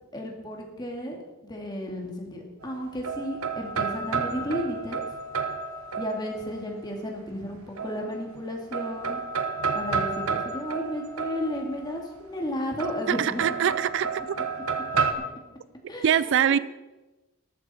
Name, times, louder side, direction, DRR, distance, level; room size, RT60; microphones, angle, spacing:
voice 1, 0.1-5.0 6.0-9.2 9.7-13.4 15.9-16.5, left 1 dB, 20° left, 0 dB, 2.3 m, -33 dB
sound 1, 2.6-6.6 7.8-8.4 8.7-11.9 12.8-15.1, right 5 dB, 75° right, 1.2 m, -31 dB
voice 2, 13.1-14.1 16.0-16.6, right 9 dB, 55° right, 16 dB, 0.3 m, -23 dB
13.5 x 13.5 x 4.4 m, 1.1 s
head